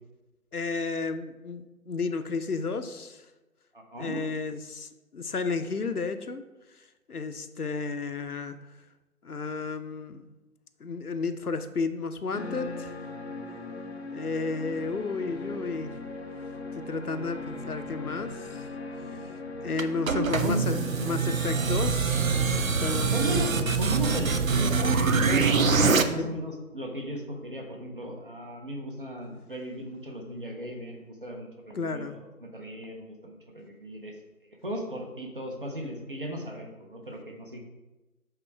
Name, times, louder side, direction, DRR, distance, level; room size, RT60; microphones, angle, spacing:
voice 1, 0.5-3.3 4.0-6.4 6.7-8.6 9.2-10.2 10.8-13.0 14.1-16.0 16.7-18.7 19.1-19.3 19.6-22.3 22.8-23.4 26.2-26.4 31.7-32.2, left 4 dB, 85° left, 9 dB, 0.7 m, -32 dB
voice 2, 3.7-4.2 20.1-20.7 23.1-32.3 32.5-34.1 34.6-37.6, right 1 dB, 35° right, 1 dB, 1.0 m, -35 dB
sound 1, 12.3-24.6, left 2 dB, 45° left, 0.7 m, -39 dB
sound 2, 19.8-26.0, right 5 dB, 65° right, 0.6 m, -24 dB
7.8 x 3.7 x 4.6 m, 1.1 s
figure-of-eight pair, 155°, 44 cm